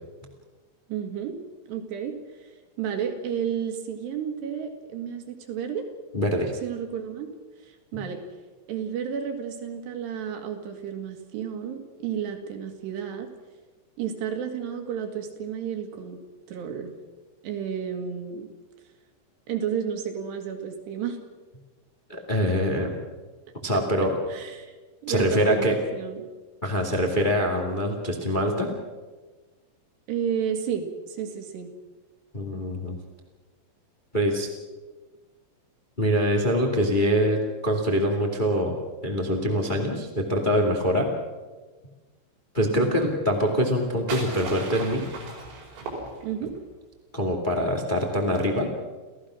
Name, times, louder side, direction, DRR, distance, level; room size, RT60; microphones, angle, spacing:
voice 1, 0.9-1.4 1.7-2.1 2.8-5.9 6.6-7.3 7.6-8.2 8.7-13.3 14.0-16.2 16.5-16.9 17.4-18.5 19.5-21.2 23.7-23.8 24.3-24.7 25.0-26.2 30.1-31.7 42.7-43.0 46.2-46.5, right 8 dB, 65° right, 5 dB, 4.0 m, -31 dB
voice 2, 6.1-6.5 7.9-8.0 22.1-22.9 23.6-24.1 25.1-25.7 26.6-28.7 32.3-33.0 34.1-34.5 36.0-38.7 39.0-41.1 42.5-45.1 47.1-48.7, equal, 35° left, 2 dB, 0.8 m, -24 dB
sound 1, 43.6-46.6, right 3 dB, 80° right, 7.4 m, -37 dB
29.5 x 15.5 x 6.3 m, 1.3 s
omnidirectional pair, 5.6 m